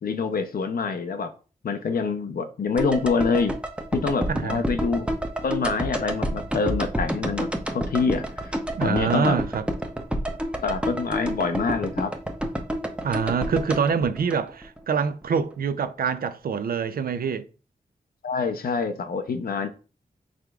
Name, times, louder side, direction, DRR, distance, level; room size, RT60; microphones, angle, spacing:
voice 1, 0.0-1.3 1.6-3.6 3.9-5.1 5.4-8.5 8.8-9.4 10.6-12.1 18.2-19.7, left 4 dB, 75° left, 0.6 m, -26 dB
sound 1, 2.8-15.0 15.2-15.3, equal, 5° right, 0.6 m, -29 dB
voice 2, 4.3-4.6 8.8-9.6 13.0-17.5, right 6 dB, 75° right, 0.4 m, -25 dB
4.8 x 3.5 x 2.3 m
cardioid pair, 60°, 15 cm